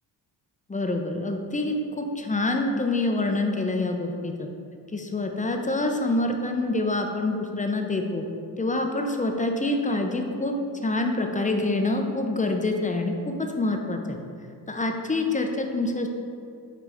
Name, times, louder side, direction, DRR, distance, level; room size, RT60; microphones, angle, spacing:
voice 1, 0.7-4.5 4.9-8.2 8.6-10.5 10.8-14.2 14.7-16.1, left 2 dB, 20° left, 3 dB, 0.6 m, -26 dB
8.2 x 2.9 x 4.8 m, 2.4 s
cardioid pair, 95°, 43 cm